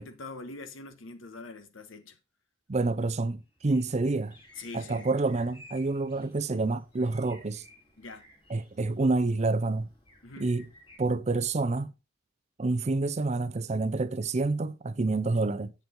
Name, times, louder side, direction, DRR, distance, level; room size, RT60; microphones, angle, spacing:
voice 1, 0.0-2.2 4.6-5.1 8.0-8.3 10.2-10.5, left 3 dB, 65° left, 1.1 m, -43 dB
voice 2, 2.7-4.4 4.7-7.6 8.5-9.9 10.4-10.7 11.0-11.9 12.6-15.7, right 3 dB, 35° right, 0.5 m, -28 dB
sound 1, 3.5-11.0, equal, 25° left, 2.6 m, -56 dB
8.2 x 6.9 x 3.8 m
head